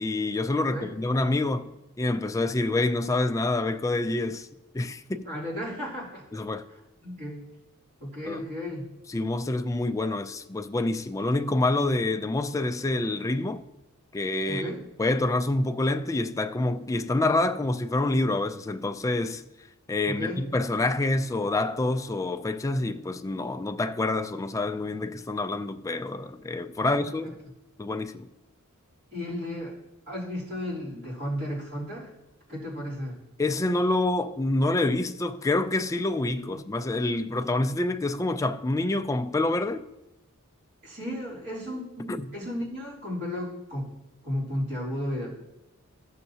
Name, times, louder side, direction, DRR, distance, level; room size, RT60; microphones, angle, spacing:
voice 1, 0.0-4.5 4.7-5.3 6.3-6.6 8.3-8.4 9.1-13.6 14.1-14.7 15.0-19.5 19.9-27.4 27.8-28.3 33.4-39.9 42.1-42.3, left 2 dB, 15° left, 0.3 m, -27 dB
voice 2, 0.6-0.9 5.2-6.2 7.0-7.5 8.0-8.8 14.5-14.8 20.1-20.4 26.8-27.3 29.1-29.8 30.1-32.1 32.5-33.2 36.5-36.6 40.8-43.9 44.2-45.4, left 1 dB, 50° right, 3.5 m, -34 dB
14.5 x 6.5 x 2.9 m
head